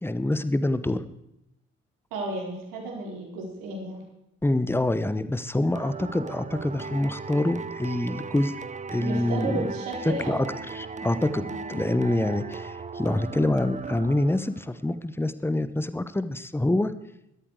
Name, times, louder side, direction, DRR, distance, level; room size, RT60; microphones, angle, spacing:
voice 1, 0.0-1.0 4.4-8.5 8.9-9.7 10.1-10.5 10.7-16.9, left 1 dB, 5° left, 13 dB, 1.1 m, -26 dB
voice 2, 2.1-4.0 9.0-10.5 11.5-11.8, right 2 dB, 65° right, 0 dB, 4.2 m, -33 dB
sound 1, 5.8-14.7, right 4 dB, 20° right, 0.9 m, -37 dB
17.5 x 12.5 x 4.8 m, 0.83 s
figure-of-eight pair, 40°, 36 cm